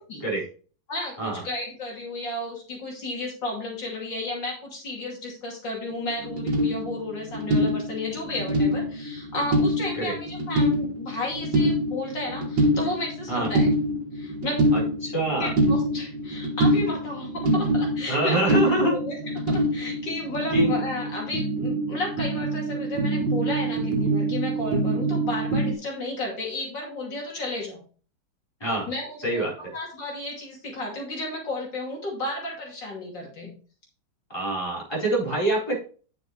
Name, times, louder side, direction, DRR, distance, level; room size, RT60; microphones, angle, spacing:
voice 1, 0.9-13.7 14.1-14.6 15.4-19.2 19.5-27.8 28.9-33.5, left 2 dB, 75° left, -2 dB, 3.3 m, -33 dB
sound 1, 5.9-6.0 6.2-25.7, equal, 75° right, 2.3 m, -25 dB
voice 2, 14.7-15.5 18.1-18.9 20.5-20.7 28.6-28.9 29.2-29.5 34.3-35.8, right 1 dB, 15° left, -5 dB, 4.4 m, -25 dB
9.6 x 6.9 x 3.3 m, 0.40 s
omnidirectional pair, 2.0 m